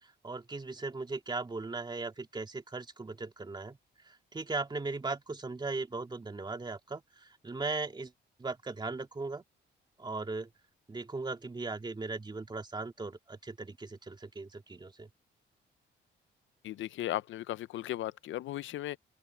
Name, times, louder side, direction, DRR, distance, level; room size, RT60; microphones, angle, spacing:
voice 1, 0.2-3.8 4.1-8.1 8.4-9.4 10.0-10.5 10.9-15.1, right 3 dB, 20° right, 2.8 m, -38 dB
voice 2, 16.6-19.0, left 14 dB, 75° left, 0.7 m, -36 dB
open air
cardioid pair, 90°, 20 cm